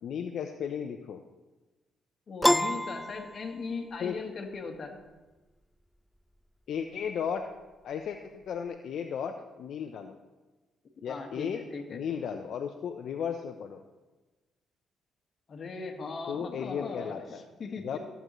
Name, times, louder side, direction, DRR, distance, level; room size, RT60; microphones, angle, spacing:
voice 1, 0.0-1.2 4.0-4.2 6.7-7.4 7.8-10.2 11.0-11.6 11.9-13.8 16.3-17.4 17.8-18.0, left 7 dB, 70° left, 5 dB, 0.6 m, -35 dB
voice 2, 2.3-5.0 11.0-12.0 15.5-18.0, left 4 dB, 45° left, 3 dB, 1.5 m, -38 dB
Piano, 2.4-4.0, equal, ahead, 0.3 m, -27 dB
14.5 x 8.0 x 3.1 m, 1.2 s
cardioid pair, 90°, 0 cm